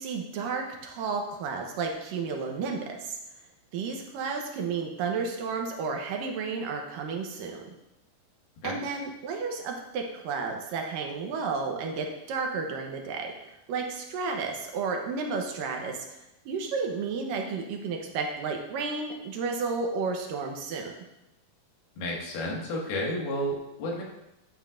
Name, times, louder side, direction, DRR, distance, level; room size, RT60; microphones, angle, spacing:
voice 1, 0.0-3.2 3.7-7.7 8.6-13.3 13.7-16.2 16.5-20.9, right 4 dB, 75° right, 2 dB, 2.4 m, -32 dB
voice 2, 22.0-24.0, equal, 85° left, -3 dB, 3.8 m, -31 dB
12.5 x 8.8 x 2.5 m, 0.92 s
omnidirectional pair, 4.3 m